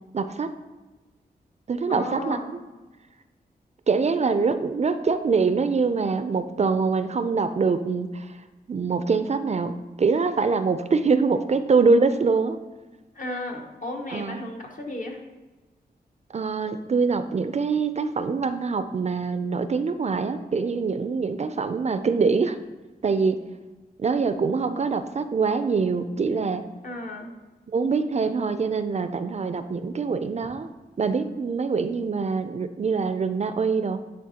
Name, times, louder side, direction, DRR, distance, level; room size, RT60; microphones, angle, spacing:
voice 1, 0.1-0.5 1.7-2.6 3.9-8.4 8.7-12.6 14.1-14.4 16.3-22.6 23.0-23.4 24.0-26.6 27.7-30.7 31.0-34.0, right 4 dB, 40° right, 10 dB, 0.4 m, -24 dB
voice 2, 1.9-2.5 13.1-15.2 26.8-27.3, left 1 dB, 55° left, 1 dB, 1.1 m, -34 dB
9.6 x 3.4 x 2.9 m, 1.2 s
cardioid pair, 55°, 17 cm